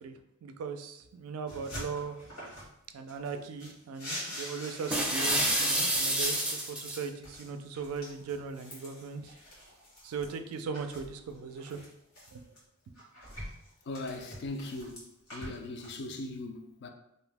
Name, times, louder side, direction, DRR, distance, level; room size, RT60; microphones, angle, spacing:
voice 1, 0.0-2.2 2.9-9.3 10.0-11.8 12.3-12.5, right 5 dB, 90° right, 0.3 m, -39 dB
sound 1, 1.5-2.7 3.1-5.5 5.8-10.3 10.7-12.6 12.9-15.9, equal, 80° left, 1.4 m, -45 dB
sound 2, 4.9-7.0, right 1 dB, 5° right, 0.5 m, -28 dB
voice 2, 13.9-16.9, left 2 dB, 55° left, 0.4 m, -39 dB
2.6 x 2.1 x 3.4 m
head